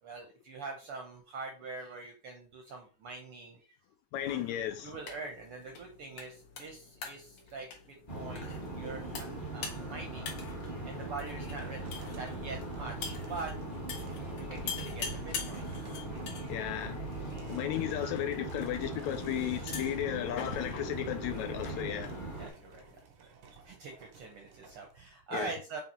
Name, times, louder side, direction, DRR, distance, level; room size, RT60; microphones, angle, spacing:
voice 1, 0.0-3.8 4.3-10.3 10.8-11.8 12.1-13.5 14.2-16.5 22.4-22.8 23.6-25.8, right 3 dB, 70° right, 1.4 m, -44 dB
voice 2, 4.1-5.0 16.5-17.1 17.5-22.2 25.3-25.5, left 11 dB, 80° left, 1.7 m, -34 dB
sound 1, 4.2-23.0, left 6 dB, 60° left, 2.2 m, -46 dB
sound 2, 8.1-22.5, right 2 dB, 20° left, 0.9 m, -40 dB
sound 3, 11.4-24.9, right 5 dB, 90° right, 2.8 m, -57 dB
7.0 x 3.5 x 4.3 m
omnidirectional pair, 3.6 m